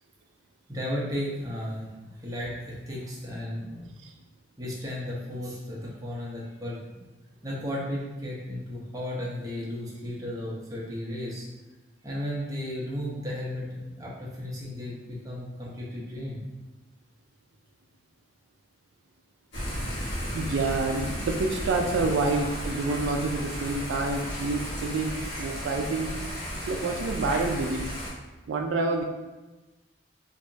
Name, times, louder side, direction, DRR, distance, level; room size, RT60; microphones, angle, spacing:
voice 1, 0.7-1.9 2.1-3.9 4.6-6.8 7.4-11.5 12.0-16.4, left 1 dB, 20° right, -5 dB, 0.7 m, -34 dB
Thunder / Rain, 19.5-28.1, equal, 65° left, 1.4 m, -34 dB
voice 2, 20.3-26.1 26.5-27.9 28.5-29.0, right 3 dB, 70° right, 2 dB, 0.3 m, -28 dB
3.4 x 2.9 x 2.6 m, 1.1 s
head